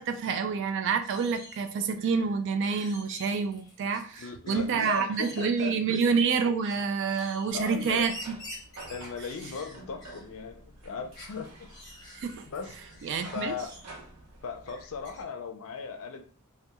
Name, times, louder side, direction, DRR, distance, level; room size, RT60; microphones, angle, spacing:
voice 1, 0.0-8.4 12.2-12.5 13.0-13.6, right 5 dB, 55° right, 0.3 m, -28 dB
sound 1, 1.0-6.1 6.6-10.3 10.6-10.7 11.1-14.0 14.6-15.2, left 1 dB, 15° left, 0.9 m, -48 dB
voice 2, 4.2-6.2 7.5-8.0 8.9-11.7 12.5-12.8 13.3-13.8 14.4-16.2, left 5 dB, 65° left, 0.4 m, -37 dB
sound 2, 7.5-15.2, right 2 dB, 90° right, 0.7 m, -50 dB
2.2 x 2.2 x 2.8 m
head